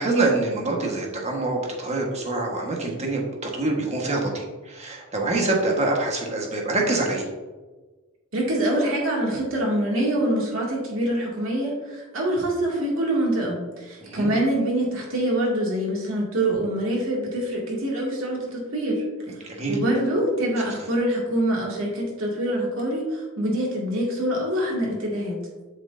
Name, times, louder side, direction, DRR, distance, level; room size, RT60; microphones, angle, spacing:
voice 1, 0.0-7.2 14.0-14.3 19.5-19.7, right 2 dB, 35° right, -1 dB, 1.3 m, -25 dB
voice 2, 8.3-19.0 19.7-25.4, right 1 dB, 80° right, -3 dB, 2.2 m, -25 dB
7.5 x 6.0 x 2.6 m, 1.2 s
head